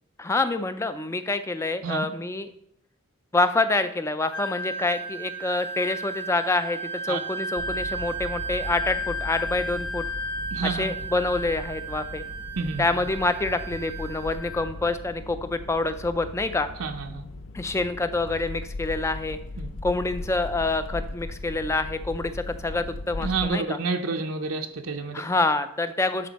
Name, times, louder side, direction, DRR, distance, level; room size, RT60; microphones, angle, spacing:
voice 1, 0.2-2.5 3.3-10.1 10.6-12.2 12.8-16.7 17.5-19.4 19.8-23.8 25.1-26.3, left 2 dB, 15° left, 10 dB, 0.3 m, -27 dB
Wind instrument woodwind instrument, 4.3-14.7, right 2 dB, 50° left, 1.7 m, -34 dB
sound 1, 7.6-23.5, left 2 dB, 65° left, 0.5 m, -38 dB
voice 2, 10.5-10.9 12.6-12.9 16.8-17.2 19.6-19.7 23.2-25.2, right 4 dB, 75° right, 3 dB, 0.6 m, -29 dB
11.0 x 4.3 x 4.0 m, 0.76 s
head